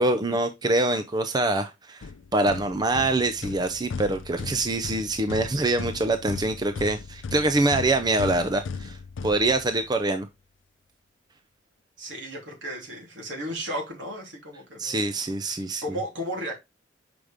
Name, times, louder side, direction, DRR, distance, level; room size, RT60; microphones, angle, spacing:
voice 1, 0.0-2.1 2.3-9.0 9.2-10.3 14.8-15.8, right 2 dB, 20° right, 0.5 m, -24 dB
sound 1, 2.0-10.0, left 5 dB, 85° left, 0.5 m, -37 dB
voice 2, 12.0-15.1 15.8-16.6, equal, 75° right, 3.3 m, -34 dB
6.4 x 5.1 x 3.5 m
head